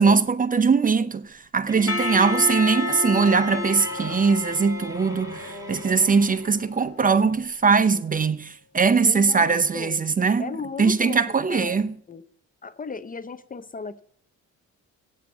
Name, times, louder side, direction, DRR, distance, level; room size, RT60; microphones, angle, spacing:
voice 1, 0.0-10.5 10.8-11.9, right 5 dB, 25° right, 0.7 m, -21 dB
Bowed string instrument, 1.7-6.6, left 1 dB, 10° right, 2.4 m, -35 dB
Percussion / Church bell, 1.9-7.1, left 4 dB, 50° left, 1.3 m, -33 dB
voice 2, 9.0-10.1 10.4-11.2 11.5-11.8 12.1-12.2 12.6-14.0, left 5 dB, 30° left, 0.7 m, -35 dB
8.9 x 7.7 x 8.2 m
cardioid pair, 90°, 30 cm